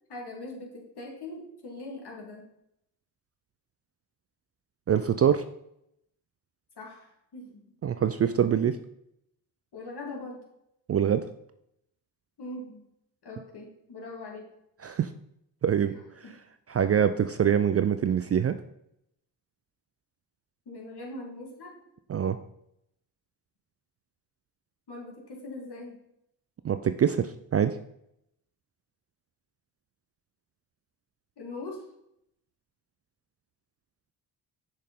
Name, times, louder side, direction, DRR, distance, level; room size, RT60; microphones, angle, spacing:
voice 1, 0.1-2.5 6.8-7.6 9.7-10.4 12.4-12.8 13.2-14.4 15.8-16.3 20.7-21.8 24.9-26.0 31.4-31.8, left 2 dB, 55° left, 0 dB, 2.5 m, -41 dB
voice 2, 4.9-5.4 7.8-8.8 10.9-11.3 14.8-15.1 15.6-15.9 16.7-18.6 22.1-22.4 26.6-27.8, right 8 dB, 35° right, 10 dB, 0.4 m, -24 dB
6.4 x 6.4 x 3.7 m, 0.77 s
supercardioid pair, 55°, 48 cm